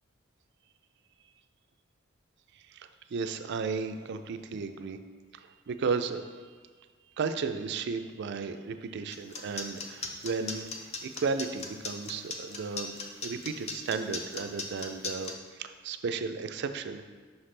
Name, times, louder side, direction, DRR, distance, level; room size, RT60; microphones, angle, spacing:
voice 1, 2.6-5.0 5.3-6.4 7.2-17.1, right 5 dB, 60° right, 9 dB, 0.4 m, -34 dB
sound 1, 9.1-15.3, left 4 dB, 35° left, 0.6 m, -37 dB
5.8 x 5.6 x 3.3 m, 1.5 s
head